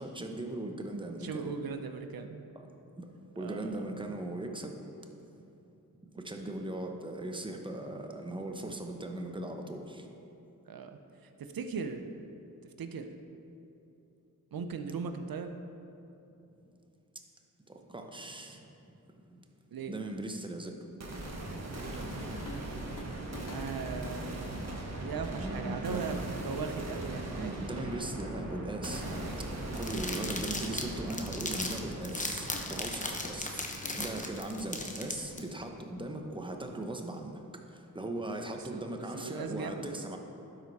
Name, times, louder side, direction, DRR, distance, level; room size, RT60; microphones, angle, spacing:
voice 1, 0.0-1.5 3.0-3.1 3.4-4.8 6.1-10.1 17.7-18.7 19.3-19.4 19.9-20.9 25.4-26.0 27.0-40.2, right 1 dB, 15° right, 3 dB, 1.0 m, -39 dB
voice 2, 1.2-2.4 3.4-4.1 10.7-11.0 11.4-12.0 12.8-13.1 14.5-15.6 19.7-19.9 23.5-27.8 38.6-40.0, right 5 dB, 65° right, 8 dB, 0.7 m, -39 dB
sound 1, 21.0-34.9, right 1 dB, 40° right, 1.5 m, -40 dB
sound 2, 21.9-22.1 22.5-22.7 23.0-25.1 26.0-26.1 27.1-27.2 27.5-27.6 28.8-29.4 32.2-34.6 35.8-35.9, left 3 dB, 55° left, 0.8 m, -51 dB
sound 3, 29.8-35.4, left 2 dB, 20° left, 1.0 m, -37 dB
12.0 x 4.8 x 4.1 m, 2.9 s
cardioid pair, 50°, 38 cm